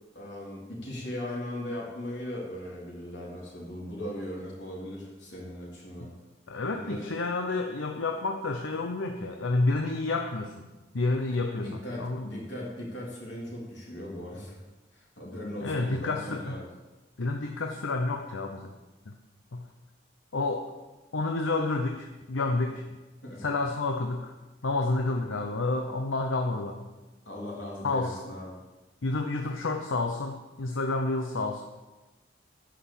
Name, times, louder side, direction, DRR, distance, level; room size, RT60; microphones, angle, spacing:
voice 1, 0.1-6.1 6.7-7.0 11.5-14.6 14.9-16.7 23.2-23.4 27.2-28.5, left 1 dB, 65° left, -4 dB, 3.5 m, -38 dB
voice 2, 6.5-10.7 10.9-12.3 15.6-16.6 17.2-18.7 19.1-19.2 19.5-19.7 20.3-20.7 21.1-22.9 23.4-24.3 24.6-26.9 27.8-28.2 29.0-31.6, left 3 dB, 85° left, 4 dB, 0.8 m, -29 dB
10.0 x 6.0 x 7.4 m, 1.1 s
head